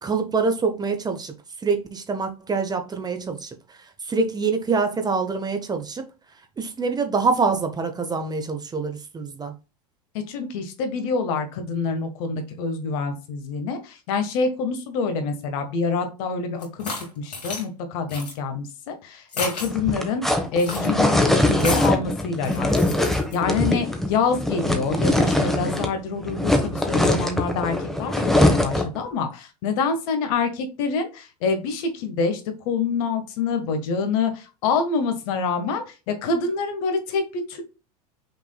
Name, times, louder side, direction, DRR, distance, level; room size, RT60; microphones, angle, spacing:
voice 1, 0.0-1.3 1.6-3.6 4.0-6.0 6.6-9.5, right 4 dB, 20° right, 1.0 m, -25 dB
voice 2, 10.1-23.0 23.3-32.4 32.6-37.6, left 4 dB, 60° left, 1.4 m, -26 dB
sound 1, 16.6-17.6 18.1-18.3 19.3-19.7 20.6-20.9 21.6-21.9 22.4-23.4, left 3 dB, 90° left, 2.1 m, -32 dB
sound 2, 19.6-26.0 26.2-29.0, left 1 dB, ahead, 1.2 m, -22 dB
6.0 x 3.6 x 2.3 m
hypercardioid pair, 95°, 20 cm